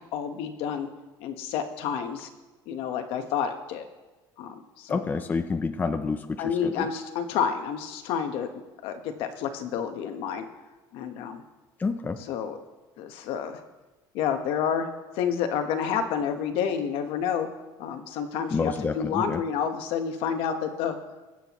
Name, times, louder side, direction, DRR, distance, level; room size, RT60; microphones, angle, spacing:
voice 1, 0.1-0.9 1.2-2.3 2.7-3.9 4.4-5.1 6.4-8.5 8.8-10.5 10.9-11.4 12.3-12.6 13.0-13.6 14.1-14.9 15.1-17.5 17.8-21.0, left 7 dB, 70° left, 6 dB, 1.2 m, -29 dB
voice 2, 4.9-6.9 11.8-12.2 18.5-19.4, left 4 dB, 15° left, 8 dB, 0.5 m, -28 dB
22.5 x 7.8 x 3.1 m, 1.2 s
cardioid pair, 145°, 10 cm